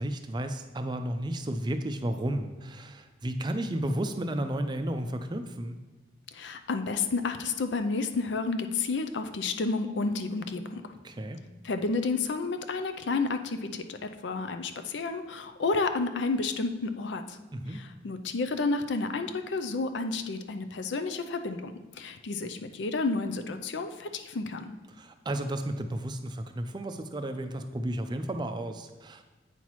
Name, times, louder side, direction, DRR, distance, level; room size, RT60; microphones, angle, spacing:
voice 1, 0.0-5.8 11.0-11.4 17.5-17.8 24.9-29.2, right 1 dB, 25° right, 7 dB, 0.4 m, -33 dB
voice 2, 6.3-10.9 11.6-17.4 17.7-24.7, left 3 dB, 70° left, 8 dB, 0.5 m, -31 dB
8.2 x 5.7 x 3.1 m, 1.2 s
head